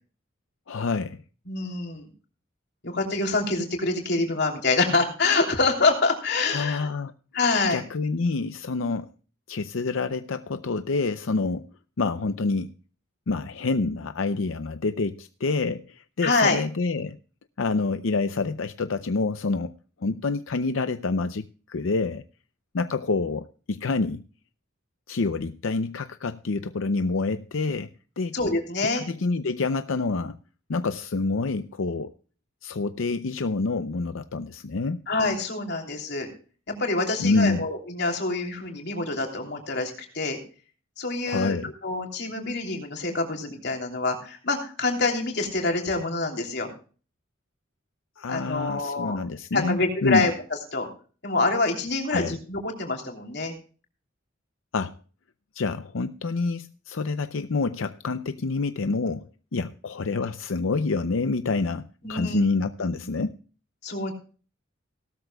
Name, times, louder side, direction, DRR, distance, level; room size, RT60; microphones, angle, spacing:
voice 1, 0.7-1.2 6.5-7.1 7.7-9.1 9.5-11.7 12.0-12.7 13.3-17.2 17.6-19.7 20.0-22.2 22.7-24.2 25.1-27.9 28.2-28.4 29.0-30.4 30.7-32.1 32.6-35.0 37.2-37.6 41.3-41.7 48.2-50.3 52.1-52.4 54.7-54.9 55.5-63.4, left 3 dB, 85° left, 0.6 m, -27 dB
voice 2, 1.5-2.1 2.8-6.9 7.3-7.8 16.2-16.6 28.3-29.0 35.1-36.3 36.7-40.4 41.0-46.7 48.3-49.2 49.5-50.3 50.7-50.9 51.2-53.5 62.0-62.4 63.8-64.1, left 3 dB, 55° left, 3.2 m, -26 dB
18.0 x 13.0 x 2.3 m
head